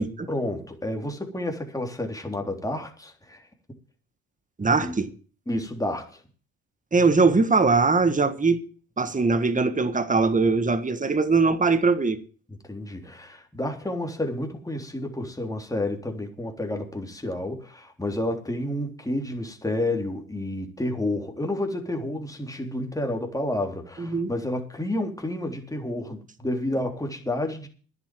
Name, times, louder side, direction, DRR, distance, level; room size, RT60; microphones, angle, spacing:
voice 1, 0.3-3.4 4.8-4.9 5.5-6.2 12.6-27.7, left 1 dB, 10° left, 3.5 m, -30 dB
voice 2, 4.6-5.1 6.9-8.6 9.0-12.2 24.0-24.3, right 4 dB, 20° right, 1.7 m, -21 dB
10.5 x 8.1 x 9.2 m
cardioid pair, 80°, 37 cm